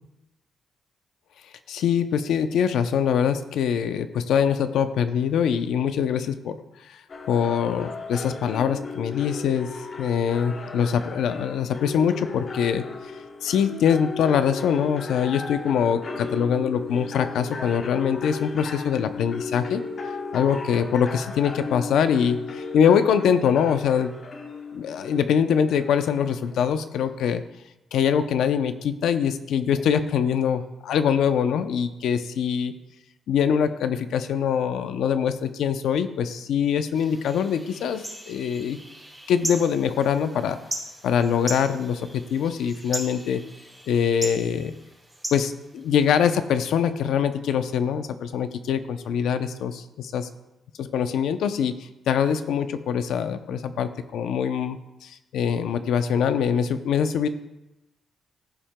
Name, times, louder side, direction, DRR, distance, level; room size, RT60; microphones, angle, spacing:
voice 1, 1.7-6.6 6.8-7.0 7.3-9.7 10.0-12.8 13.4-19.8 20.3-24.1 24.7-27.4 27.9-32.7 33.3-38.8 39.3-40.6 41.0-43.4 43.9-44.7 45.3-50.3 50.8-51.8 52.1-57.3, left 7 dB, 80° left, 10 dB, 0.6 m, -23 dB
sound 1, 7.1-26.7, left 4 dB, 40° left, 1.0 m, -36 dB
sound 2, 36.9-46.3, right 1 dB, 10° right, 2.1 m, -38 dB
15.0 x 7.3 x 2.2 m, 0.95 s
cardioid pair, 130°, 0 cm